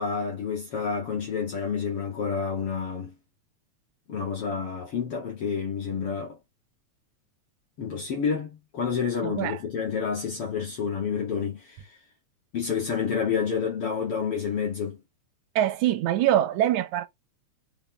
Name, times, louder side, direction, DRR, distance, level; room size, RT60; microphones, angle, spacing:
voice 1, 0.0-3.1 4.1-6.4 7.8-12.0 12.5-15.0, left 6 dB, 50° left, 3.1 m, -29 dB
voice 2, 9.2-9.6 15.6-17.1, right 12 dB, 80° right, 2.4 m, -24 dB
7.0 x 4.5 x 4.9 m
omnidirectional pair, 3.3 m